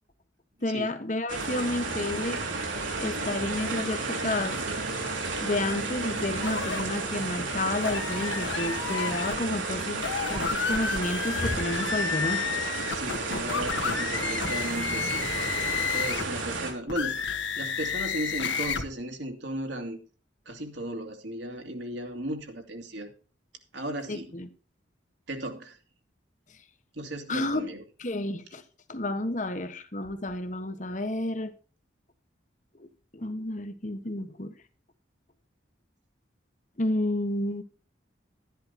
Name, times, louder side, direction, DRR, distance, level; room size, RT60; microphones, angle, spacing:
voice 1, 0.6-2.4 3.0-4.6 5.4-12.4 24.1-24.5 27.3-27.7 28.0-28.6 28.9-31.5 32.8-32.9 33.1-34.5 36.8-37.6, left 1 dB, 40° left, 1.3 m, -31 dB
sound 1, 1.3-16.7, right 3 dB, 90° right, 3.3 m, -32 dB
sound 2, 6.4-6.8 7.8-9.4 9.9-16.3 16.9-18.8, left 6 dB, 75° left, 1.7 m, -31 dB
voice 2, 12.8-15.3 15.9-20.0 20.5-23.1 23.7-24.3 25.3-25.8 26.9-27.8, right 1 dB, 75° right, 2.5 m, -36 dB
12.5 x 10.5 x 4.3 m
head